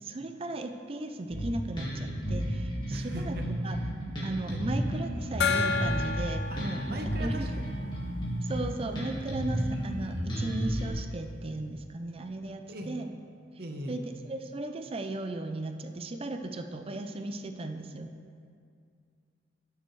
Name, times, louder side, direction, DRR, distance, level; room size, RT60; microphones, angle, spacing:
voice 1, 0.0-3.4 3.6-3.8 4.2-7.5 8.4-13.1 13.9-18.1, right 2 dB, 30° right, 6 dB, 0.4 m, -36 dB
Bass guitar, 1.3-10.9, equal, 25° left, 1.9 m, -32 dB
voice 2, 2.9-3.4 4.5-4.6 6.5-6.6 6.9-8.0 12.7-13.0 13.6-14.0, right 1 dB, 55° right, 3 dB, 1.0 m, -39 dB
Gong, 5.4-8.7, left 5 dB, 60° left, 0.5 m, -32 dB
16.0 x 6.9 x 3.2 m, 2.3 s
head